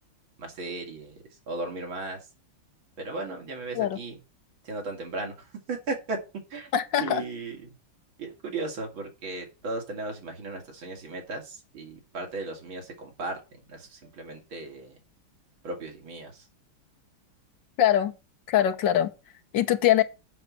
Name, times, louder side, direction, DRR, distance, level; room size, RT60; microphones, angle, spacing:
voice 1, 0.4-2.3 3.0-4.2 4.6-6.2 6.5-6.7 7.0-7.7 8.2-13.4 13.7-15.0 15.6-16.5, right 3 dB, 75° right, 3.4 m, -36 dB
voice 2, 6.7-7.2 17.8-18.1 18.5-19.1 19.5-20.0, left 11 dB, 65° left, 1.7 m, -22 dB
7.6 x 5.6 x 7.5 m
omnidirectional pair, 2.2 m